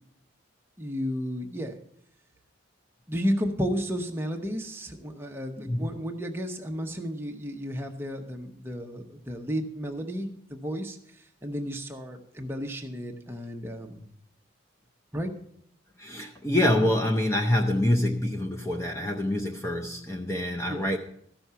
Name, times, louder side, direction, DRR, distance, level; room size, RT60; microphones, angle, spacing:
voice 1, 0.8-1.8 3.1-11.0 11.4-14.1 15.1-15.3 20.7-20.9, equal, 10° right, 3 dB, 0.9 m, -32 dB
voice 2, 5.6-5.9 16.0-21.0, left 1 dB, 15° left, 2 dB, 0.6 m, -26 dB
13.5 x 6.1 x 6.9 m, 0.68 s
head